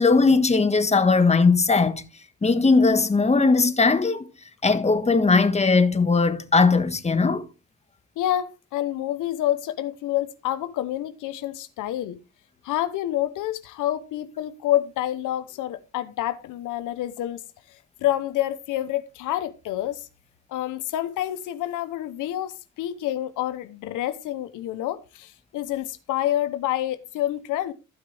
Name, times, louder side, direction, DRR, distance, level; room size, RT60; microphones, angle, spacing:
voice 1, 0.0-2.0 2.4-4.2 4.6-7.4, left 4 dB, 20° left, 1.5 m, -19 dB
voice 2, 8.2-12.2 12.6-17.4 18.0-20.1 20.5-27.7, left 13 dB, 85° left, 0.9 m, -28 dB
15.0 x 6.1 x 3.4 m
cardioid pair, 90°, 30 cm